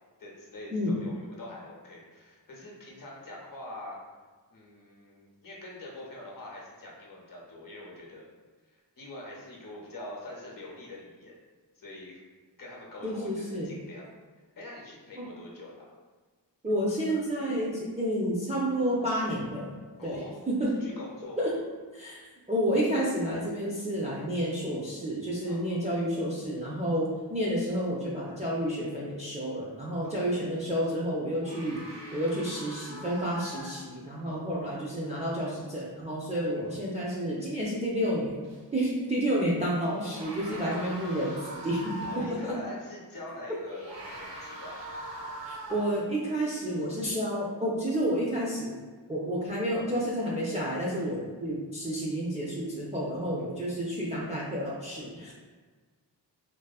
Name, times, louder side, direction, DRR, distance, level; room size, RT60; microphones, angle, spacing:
voice 1, 0.2-4.0 4.5-8.3 8.7-11.3 11.7-12.2 12.6-14.1 14.6-15.8 20.0-21.6 25.4-25.8 30.0-30.3 34.2-34.5 40.4-41.0 42.0-44.9 53.3-53.6, left 1 dB, 50° left, -3 dB, 0.7 m, -44 dB
voice 2, 13.0-13.7 15.2-15.3 16.6-19.7 20.0-20.2 20.5-20.7 21.4-21.5 21.9-38.4 38.7-42.5 45.5-48.7 49.1-55.3, equal, 15° right, -7 dB, 0.4 m, -30 dB
sound 1, 31.4-34.2 38.4-38.6 39.9-42.5 43.6-46.1, right 1 dB, 75° right, 0.7 m, -42 dB
2.6 x 2.4 x 2.3 m, 1.4 s
wide cardioid pair, 70°, 42 cm